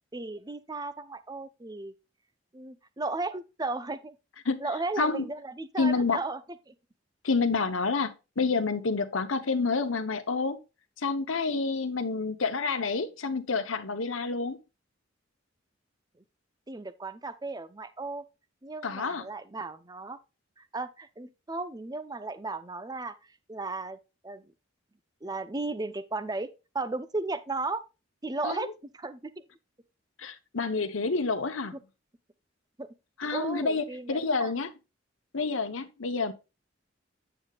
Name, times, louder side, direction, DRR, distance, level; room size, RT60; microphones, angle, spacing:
voice 1, 0.1-1.9 2.5-4.2 4.6-6.4 6.7-6.8 16.7-18.2 18.6-20.2 20.6-23.1 23.5-24.0 24.2-24.5 25.2-26.5 26.7-27.8 28.2-28.7 28.9-29.3 31.7-31.8 32.8-32.9 33.3-34.5, right 3 dB, 20° right, 0.7 m, -35 dB
voice 2, 5.8-6.2 7.2-10.6 11.0-14.6 18.8-19.2 28.4-28.7 30.2-31.8 33.2-34.7 35.3-36.3, left 4 dB, 85° left, 1.0 m, -28 dB
9.3 x 7.9 x 2.4 m
head